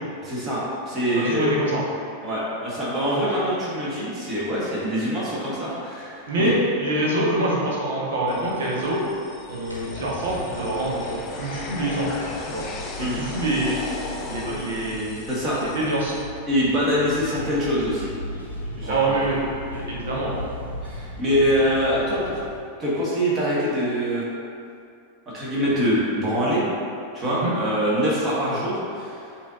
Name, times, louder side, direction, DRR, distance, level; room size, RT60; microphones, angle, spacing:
voice 1, 0.2-1.5 2.2-6.3 13.0-13.2 15.3-15.6 16.5-18.1 18.6-19.1 20.8-22.4 22.8-24.3 25.3-26.6 27.1-29.3, equal, 25° right, -8 dB, 1.5 m, -24 dB
voice 2, 1.1-1.8 3.1-3.2 6.3-9.0 9.5-12.1 12.5-12.7 13.0-13.7 14.3-15.1 15.6-16.2 18.8-19.4 19.7-20.4 27.2-27.5, right 1 dB, 60° right, -4 dB, 1.1 m, -25 dB
sound 1, 8.3-16.2, left 3 dB, 30° left, 0.5 m, -36 dB
sound 2, 9.7-22.6, left 1 dB, 85° left, 0.8 m, -38 dB
7.2 x 2.9 x 2.5 m, 2.5 s
figure-of-eight pair, 90°, 0 cm